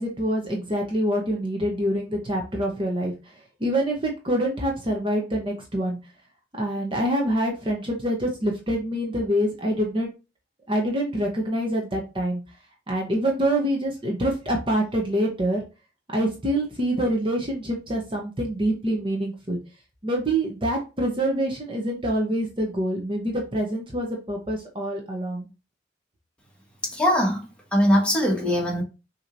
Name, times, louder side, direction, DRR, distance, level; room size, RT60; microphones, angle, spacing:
voice 1, 0.0-3.1 3.6-6.0 6.6-10.1 10.7-12.4 12.9-15.6 16.1-19.6 20.0-25.5, right 1 dB, 30° right, 0.9 m, -26 dB
voice 2, 26.8-27.5 27.7-28.8, equal, 5° left, 1.3 m, -21 dB
6.2 x 2.9 x 2.6 m
head